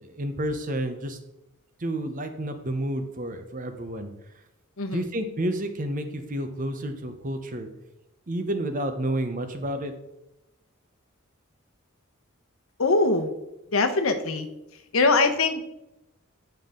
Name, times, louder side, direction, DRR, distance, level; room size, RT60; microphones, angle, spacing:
voice 1, 0.0-1.2 1.8-4.1 4.9-7.7 8.3-9.9, right 1 dB, 40° right, 7 dB, 0.9 m, -30 dB
voice 2, 12.8-13.3 13.7-14.5 14.9-15.6, left 3 dB, 75° left, 7 dB, 0.9 m, -22 dB
9.1 x 5.6 x 3.8 m, 0.90 s
head